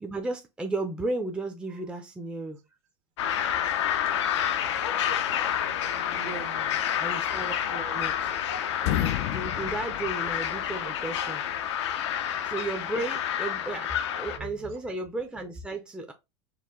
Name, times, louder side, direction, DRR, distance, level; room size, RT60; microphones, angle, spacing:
voice 1, 0.0-2.6 7.0-8.3 8.8-11.5 12.4-16.1, right 2 dB, 5° right, 0.7 m, -34 dB
sound 1, 3.2-14.4, left 9 dB, 90° left, 0.7 m, -29 dB
voice 2, 4.3-4.7 6.1-6.9 10.8-10.9 11.2-11.3 14.3-14.7, right 6 dB, 55° right, 1.4 m, -43 dB
sound 2, 7.6-8.5 8.7-10.9, left 15 dB, 65° left, 0.4 m, -32 dB
4.7 x 2.3 x 3.7 m
supercardioid pair, 125°, 14 cm